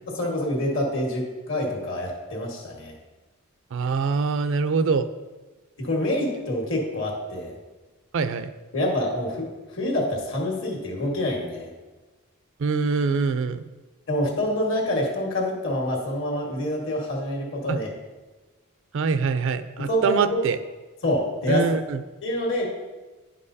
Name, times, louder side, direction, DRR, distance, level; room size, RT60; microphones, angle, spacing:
voice 1, 0.1-2.9 5.8-7.5 8.7-11.7 14.1-17.9 19.9-20.4 21.0-21.7 22.2-22.7, left 1 dB, 65° left, -1 dB, 1.6 m, -26 dB
voice 2, 3.7-5.1 8.1-8.5 12.6-13.6 17.7-17.8 18.9-20.6 21.5-22.0, right 5 dB, 65° right, 12 dB, 0.4 m, -24 dB
10.0 x 5.3 x 2.7 m, 1.2 s
head